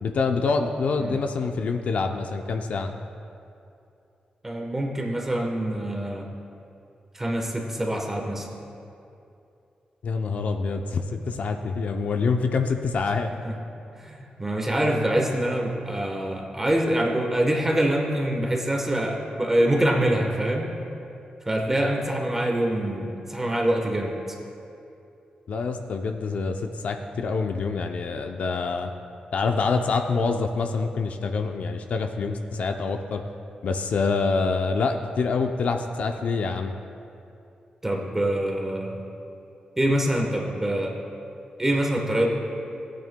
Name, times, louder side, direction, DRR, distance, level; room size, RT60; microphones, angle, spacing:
voice 1, 0.0-3.0 10.0-13.3 25.5-28.9 29.3-33.2 33.6-36.7, left 4 dB, 60° left, 5 dB, 0.5 m, -26 dB
voice 2, 4.4-6.3 7.1-8.5 13.4-13.6 14.0-20.7 21.5-24.2 37.8-39.0 39.8-41.0 41.6-42.3, right 1 dB, 15° right, 1 dB, 1.1 m, -25 dB
16.5 x 9.2 x 2.2 m, 2.7 s
wide cardioid pair, 155°, 3 cm